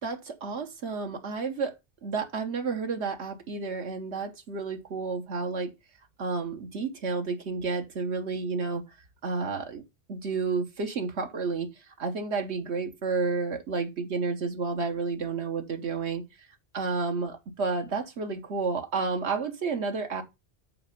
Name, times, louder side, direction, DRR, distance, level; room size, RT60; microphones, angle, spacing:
voice 1, 0.0-1.7 2.0-5.7 6.2-8.8 9.2-9.8 10.1-16.5 16.7-20.2, right 4 dB, 85° right, 1.4 m, -31 dB
8.6 x 4.2 x 5.2 m
omnidirectional pair, 1.1 m